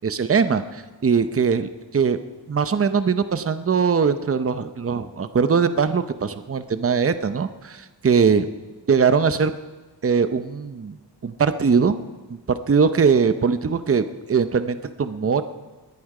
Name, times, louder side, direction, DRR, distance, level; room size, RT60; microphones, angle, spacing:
voice 1, 0.0-2.2 2.5-8.5 8.9-9.5 10.0-11.0 11.2-12.0 12.3-15.4, right 5 dB, 30° right, 11 dB, 0.7 m, -21 dB
20.5 x 10.0 x 4.9 m, 1.2 s
wide cardioid pair, 100°, 44 cm